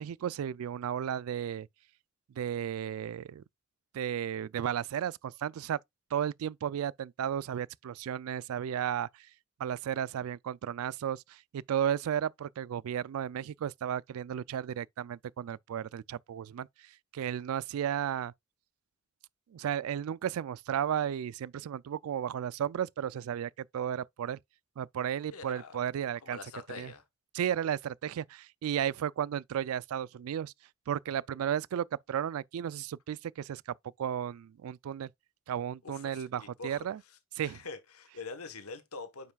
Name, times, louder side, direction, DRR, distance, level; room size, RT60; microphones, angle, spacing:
voice 1, 0.0-1.7 2.4-3.4 3.9-5.8 6.1-9.1 9.6-16.7 17.1-18.3 19.5-24.4 24.8-26.4 26.7-26.9 27.3-30.5 30.9-33.6 34.0-35.1 35.5-37.0 37.4-37.6, right 9 dB, 70° right, 0.3 m, -34 dB
voice 2, 25.3-25.8 26.2-27.0 35.8-36.9 37.4-39.3, left 4 dB, 85° left, 1.1 m, -44 dB
9.2 x 5.6 x 2.3 m
head